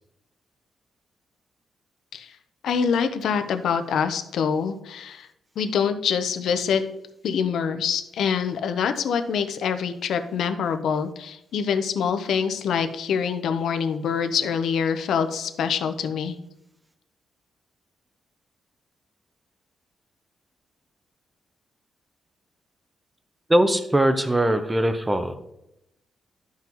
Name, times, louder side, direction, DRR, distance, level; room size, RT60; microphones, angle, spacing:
voice 1, 2.6-5.3 5.6-6.8 7.2-16.4, left 7 dB, 80° left, 9 dB, 0.7 m, -25 dB
voice 2, 23.5-25.4, right 1 dB, 10° right, 9 dB, 0.6 m, -21 dB
12.0 x 5.7 x 3.0 m, 0.84 s
wide cardioid pair, 145°, 0 cm